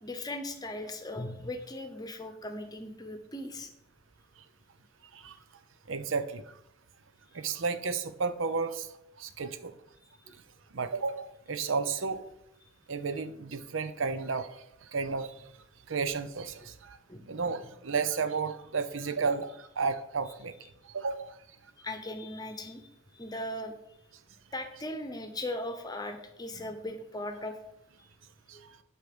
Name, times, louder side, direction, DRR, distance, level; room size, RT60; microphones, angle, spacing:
voice 1, 0.0-3.7 10.3-10.4 16.6-16.7 17.1-17.3 17.6-17.7 21.8-23.7 24.5-27.6 28.5-28.7, left 1 dB, 20° left, 7 dB, 0.9 m, -38 dB
voice 2, 5.9-6.5 7.3-8.9 9.2-9.7 10.7-12.2 12.9-14.6 14.9-15.3 15.9-17.0 17.3-20.5 20.8-21.3 28.5-28.6, right 5 dB, 75° right, 11 dB, 0.7 m, -32 dB
8.2 x 4.7 x 6.8 m, 0.83 s
head